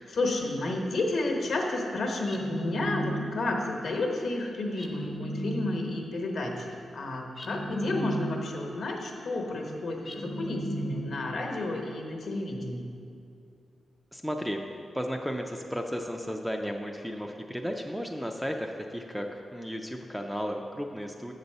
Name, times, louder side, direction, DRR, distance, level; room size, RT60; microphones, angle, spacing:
voice 1, 0.0-12.9, left 2 dB, 55° left, 1 dB, 1.0 m, -31 dB
sound 1, 2.3-3.6 4.8-6.1 7.4-8.7 10.1-11.4, right 1 dB, 20° left, 0.7 m, -35 dB
voice 2, 14.1-14.6 14.9-21.3, equal, ahead, 3 dB, 0.3 m, -34 dB
7.8 x 4.0 x 6.6 m, 2.4 s
wide cardioid pair, 175°, 0 cm